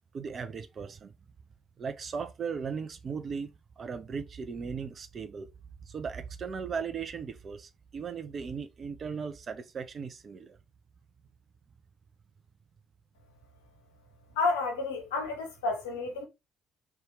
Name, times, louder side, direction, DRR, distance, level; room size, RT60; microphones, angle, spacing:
voice 1, 0.1-1.1 1.8-5.5 5.8-10.6, right 6 dB, 45° right, 0.4 m, -37 dB
voice 2, 14.4-16.2, left 3 dB, 75° left, 0.6 m, -30 dB
2.7 x 2.3 x 3.0 m
figure-of-eight pair, 45°, 0 cm